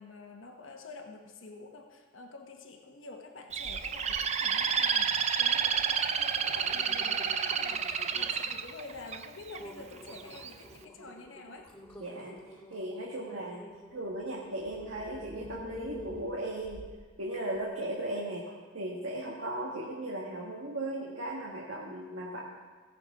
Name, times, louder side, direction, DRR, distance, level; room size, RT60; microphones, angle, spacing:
voice 1, 0.0-11.7, left 3 dB, 75° left, 3 dB, 1.1 m, -48 dB
Bird, 3.5-9.6 10.1-10.5, right 7 dB, 35° right, 0.4 m, -30 dB
sound 1, 3.6-4.3 4.6-5.2 5.7-5.8 6.2-8.5 9.0-9.1 9.6-17.1 17.5-17.6, left 1 dB, 10° left, 2.4 m, -48 dB
voice 2, 12.0-12.4 12.7-16.8 17.2-22.4, right 1 dB, 80° right, -3 dB, 1.5 m, -37 dB
17.0 x 6.6 x 4.8 m, 1.4 s
head